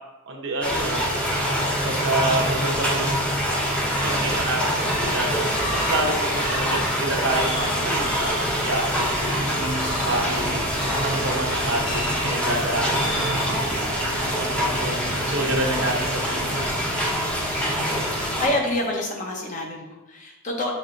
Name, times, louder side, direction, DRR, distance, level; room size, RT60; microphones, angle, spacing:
voice 1, 0.3-1.1 1.8-3.2 4.0-5.3 5.7-9.4 10.0-10.6 11.0-14.0 14.3-16.6, right 2 dB, 60° right, 0 dB, 0.8 m, -28 dB
sound 1, 0.6-18.5, equal, 5° left, 0.7 m, -25 dB
sound 2, 3.9-4.5 4.8-6.1 6.4-6.9 7.3-7.8 8.0-8.5 8.9-9.4 9.8-10.2 10.8-11.3 11.8-12.4 12.9-13.4, equal, 85° left, 1.5 m, -32 dB
sound 3, 9.2-17.7, right 2 dB, 45° right, 0.4 m, -36 dB
voice 2, 18.2-20.7, left 1 dB, 40° left, 0 dB, 0.7 m, -27 dB
6.2 x 3.2 x 2.5 m, 1.0 s
head